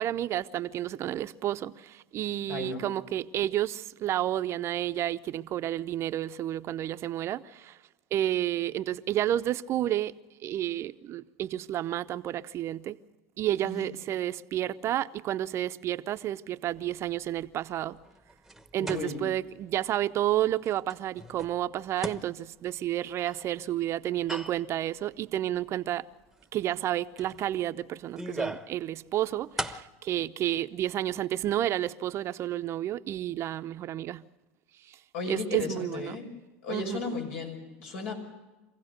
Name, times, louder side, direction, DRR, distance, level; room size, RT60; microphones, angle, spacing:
voice 1, 0.0-7.8 8.1-10.1 10.4-13.0 13.4-18.0 18.7-26.0 26.5-34.2 35.3-36.2 36.7-37.0, right 12 dB, 40° right, 0.7 m, -31 dB
voice 2, 2.5-2.8 13.6-13.9 18.8-19.2 35.1-36.3 36.6-38.1, left 4 dB, 75° left, 5.9 m, -35 dB
sound 1, 16.7-19.8 20.2-20.3 20.6-23.5 24.0-24.8 25.3-25.4 26.3-26.5 26.8-26.9 27.2-28.8 29.1-29.8, right 1 dB, 5° right, 1.1 m, -39 dB
25.5 x 16.0 x 6.6 m
hypercardioid pair, 105°, 7 cm